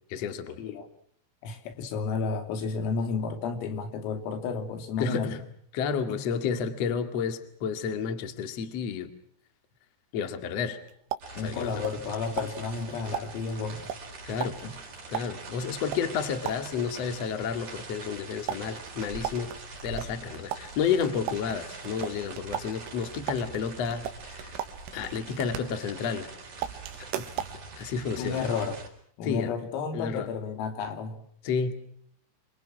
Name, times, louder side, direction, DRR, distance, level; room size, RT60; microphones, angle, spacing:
voice 1, 0.1-0.6 5.0-5.4 5.7-9.1 10.1-10.8 11.3-11.8 14.3-14.6 15.1-19.5 19.8-24.5 24.9-26.3 27.0-27.3 27.8-28.4 29.2-29.6 29.9-30.3 31.4-31.8, left 6 dB, 45° left, 9 dB, 2.2 m, -31 dB
voice 2, 1.4-5.3 6.1-6.2 11.4-13.9 14.4-14.8 28.2-28.8 29.2-31.2, left 5 dB, 90° left, 7 dB, 5.4 m, -32 dB
sound 1, 10.6-12.1 12.4-16.9 18.5-26.3 26.6-27.6, right 11 dB, 80° right, 3.9 m, -38 dB
sound 2, 11.2-28.9, right 3 dB, 35° right, 5.4 m, -44 dB
28.0 x 25.0 x 6.2 m, 0.64 s
omnidirectional pair, 5.9 m